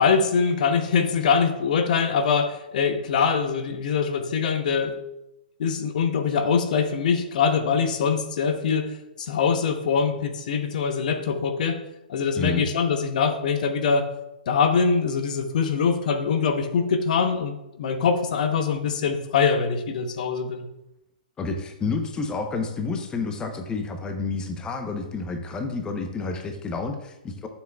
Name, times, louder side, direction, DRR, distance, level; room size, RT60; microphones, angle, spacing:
voice 1, 0.0-5.0 5.6-11.8 12.1-14.1 14.5-20.6, left 6 dB, 55° left, 7 dB, 1.0 m, -23 dB
voice 2, 21.4-27.5, left 3 dB, 15° left, 5 dB, 0.9 m, -30 dB
12.5 x 7.1 x 2.4 m, 0.88 s
figure-of-eight pair, 120°, 5 cm